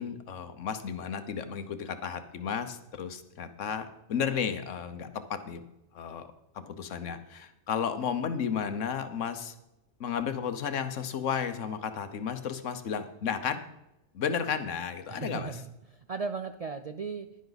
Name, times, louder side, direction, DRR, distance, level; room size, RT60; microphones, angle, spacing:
voice 1, 0.0-5.6 5.9-6.3 6.7-9.5 10.0-13.6 14.1-15.5, left 7 dB, 85° left, 9 dB, 1.3 m, -33 dB
voice 2, 15.1-17.3, right 5 dB, 60° right, 7 dB, 0.4 m, -37 dB
10.5 x 10.5 x 4.0 m, 0.92 s
omnidirectional pair, 1.2 m